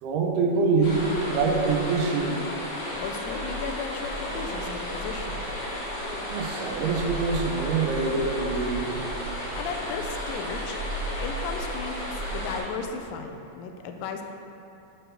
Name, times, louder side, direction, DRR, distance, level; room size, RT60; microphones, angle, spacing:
voice 1, 0.0-2.4 6.3-9.0, right 4 dB, 80° right, 2 dB, 2.2 m, -25 dB
sound 1, 0.8-12.6, equal, 55° left, 2.6 m, -33 dB
voice 2, 2.9-5.6 9.6-10.8 11.2-14.2, left 5 dB, 85° left, 5 dB, 2.3 m, -35 dB
6.6 x 4.4 x 6.4 m, 2.8 s
omnidirectional pair, 3.9 m